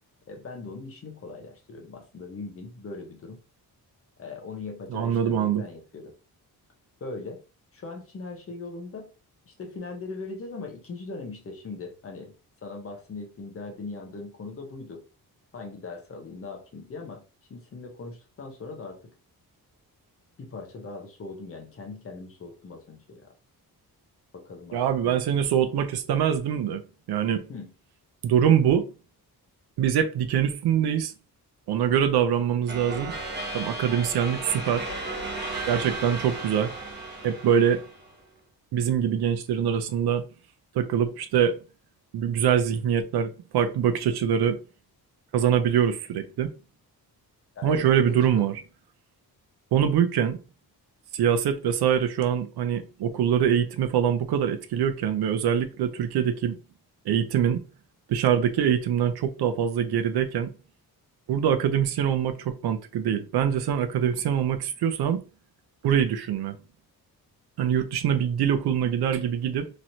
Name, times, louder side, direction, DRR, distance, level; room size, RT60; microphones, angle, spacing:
voice 1, 0.3-3.4 4.2-6.1 7.0-7.4 7.7-9.1 9.5-12.3 12.6-15.0 15.5-17.2 17.5-19.1 20.4-23.3 24.3-25.2 27.5-27.7 47.5-48.2, left 3 dB, 35° left, 0.7 m, -40 dB
voice 2, 4.9-5.6 24.7-26.8 27.1-27.4 28.2-28.9 29.8-31.1 31.7-33.1 33.5-34.9 35.7-36.7 37.2-37.8 38.7-40.2 40.7-41.6 42.1-44.6 45.3-46.5 47.6-48.5 49.7-50.4 51.1-56.6 57.1-57.6 58.1-60.5 61.3-65.2 65.8-66.6 67.6-69.7, right 8 dB, 80° right, 0.6 m, -24 dB
sound 1, 32.7-38.2, right 2 dB, 25° right, 1.0 m, -35 dB
3.1 x 2.8 x 2.6 m
wide cardioid pair, 180°, 38 cm